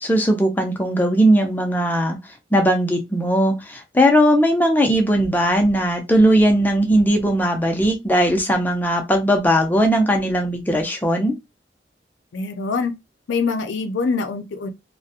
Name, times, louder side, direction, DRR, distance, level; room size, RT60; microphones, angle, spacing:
voice 1, 0.0-2.2 2.5-11.4, equal, 10° left, 0.4 m, -18 dB
voice 2, 12.3-13.0 13.3-14.7, left 4 dB, 90° left, 0.5 m, -24 dB
2.4 x 2.1 x 2.7 m
head